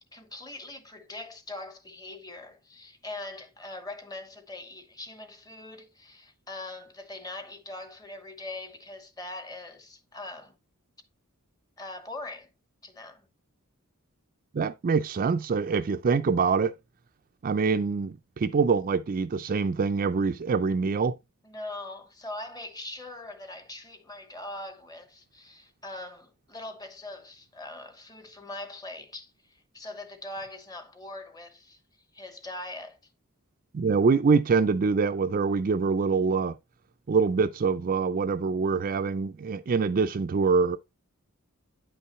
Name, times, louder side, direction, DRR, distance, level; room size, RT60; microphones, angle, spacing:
voice 1, 0.1-10.6 11.8-12.5 12.8-13.3 21.4-31.8 32.1-33.0, left 2 dB, 15° left, 1.0 m, -41 dB
voice 2, 14.5-16.7 17.4-21.1 33.7-36.5 37.1-40.8, right 5 dB, 40° right, 0.4 m, -25 dB
9.2 x 5.5 x 3.0 m
head